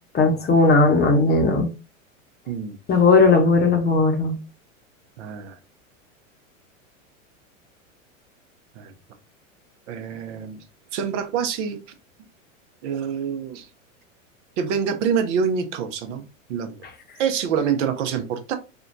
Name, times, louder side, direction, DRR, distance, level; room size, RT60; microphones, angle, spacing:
voice 1, 0.1-1.7 2.9-4.4, left 3 dB, 25° left, 0.8 m, -17 dB
voice 2, 5.2-5.6 8.8-8.9 9.9-10.6 10.9-11.8 12.8-13.7 14.6-16.8 17.2-18.5, right 7 dB, 65° right, 0.8 m, -26 dB
3.6 x 2.2 x 2.6 m
hypercardioid pair, 105°, 40 cm